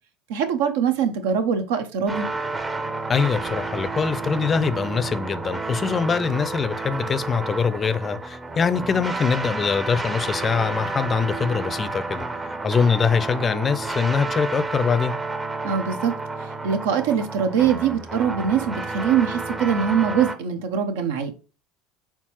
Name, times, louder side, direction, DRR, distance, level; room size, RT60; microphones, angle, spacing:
voice 1, 0.3-2.3 15.6-16.1 16.6-21.3, right 7 dB, 75° right, 0.6 m, -23 dB
sound 1, 2.1-20.4, right 3 dB, 20° right, 0.6 m, -30 dB
voice 2, 3.1-15.1, left 5 dB, 30° left, 0.4 m, -23 dB
4.4 x 3.5 x 2.9 m
hypercardioid pair, 80°, 0 cm